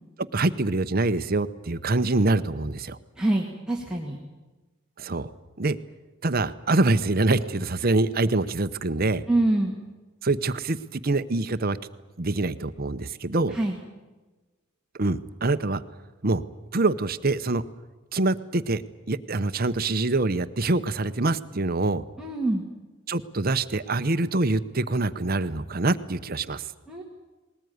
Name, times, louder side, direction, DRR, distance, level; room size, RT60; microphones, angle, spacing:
voice 1, 0.3-3.0 5.0-5.3 5.6-5.8 6.2-9.2 10.2-11.8 12.2-13.6 15.0-15.8 16.2-16.4 16.7-17.6 18.1-18.8 19.1-22.0 23.1-26.6, right 2 dB, 45° right, 13 dB, 0.8 m, -25 dB
voice 2, 3.2-4.2 9.3-9.8 13.5-13.8 22.2-22.7 26.9-27.0, right 2 dB, 5° right, -3 dB, 2.1 m, -25 dB
20.5 x 19.0 x 9.5 m, 1.2 s
head